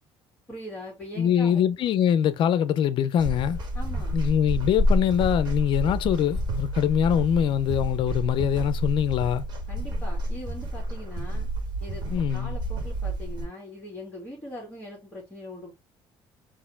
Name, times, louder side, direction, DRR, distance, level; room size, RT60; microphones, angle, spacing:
voice 1, 0.5-1.6 3.7-4.2 9.7-11.5 11.8-12.1 12.3-15.7, left 1 dB, 15° left, 2.0 m, -41 dB
voice 2, 1.2-3.6 4.1-9.4 12.1-12.5, left 9 dB, 55° left, 0.6 m, -23 dB
sound 1, 3.2-13.5, equal, 50° right, 1.9 m, -29 dB
4.7 x 3.0 x 3.3 m
cardioid pair, 145°, 10 cm